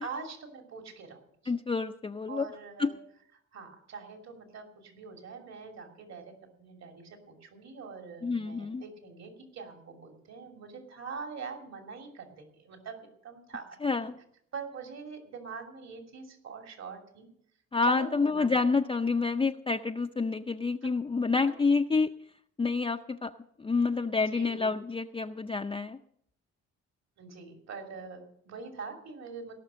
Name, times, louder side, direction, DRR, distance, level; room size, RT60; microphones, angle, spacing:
voice 1, 0.0-1.5 2.3-3.0 3.5-6.3 6.6-14.1 14.5-17.3 17.8-18.7 20.8-20.9 21.3-21.4 24.1-24.7 27.2-29.5, right 5 dB, 60° right, 3 dB, 2.9 m, -43 dB
voice 2, 1.5-2.5 2.8-2.9 8.2-8.8 13.8-14.1 17.7-22.1 22.6-23.3 23.6-26.0, left 4 dB, 15° left, 4 dB, 0.5 m, -28 dB
17.5 x 6.0 x 7.5 m, 0.69 s
cardioid pair, 90°, 30 cm